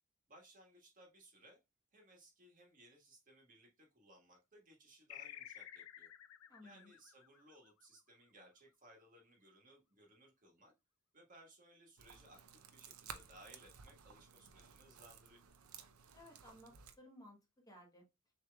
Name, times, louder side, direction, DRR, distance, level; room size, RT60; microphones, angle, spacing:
voice 1, 0.3-1.6 1.9-6.1 6.6-10.7 11.1-15.4, right 1 dB, 40° right, 1 dB, 1.6 m, -63 dB
sound 1, 5.1-8.1, left 11 dB, 75° left, 0.4 m, -53 dB
voice 2, 6.5-6.9 16.1-17.4 17.7-18.1, left 1 dB, 15° left, 1 dB, 1.1 m, -58 dB
sound 2, 12.0-17.0, right 7 dB, 75° right, 0.6 m, -56 dB
6.5 x 3.2 x 2.3 m, 0.22 s
head